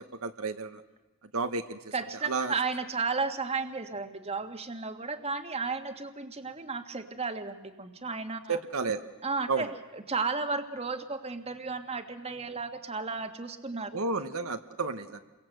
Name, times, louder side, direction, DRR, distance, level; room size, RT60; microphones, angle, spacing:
voice 1, 0.2-0.8 1.3-1.9 2.2-2.5 8.5-9.0 9.5-9.7 13.9-15.2, right 4 dB, 65° right, 8 dB, 1.2 m, -31 dB
voice 2, 1.9-8.6 9.2-13.9, right 4 dB, 30° right, 8 dB, 1.7 m, -34 dB
29.5 x 23.5 x 7.9 m, 1.2 s
head